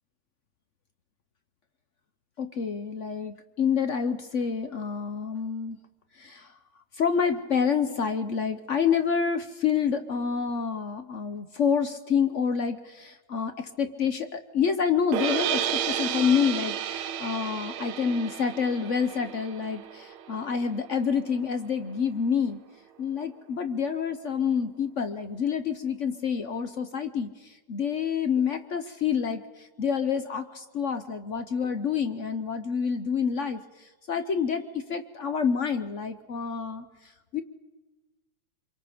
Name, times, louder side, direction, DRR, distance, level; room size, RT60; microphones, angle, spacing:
voice 1, 2.4-5.8 6.1-6.5 6.9-22.6 23.0-37.4, left 6 dB, 60° left, 9 dB, 0.8 m, -28 dB
sound 1, 15.1-21.3, right 9 dB, 85° right, 1.8 m, -32 dB
26.0 x 23.0 x 5.1 m, 1.2 s
omnidirectional pair, 2.3 m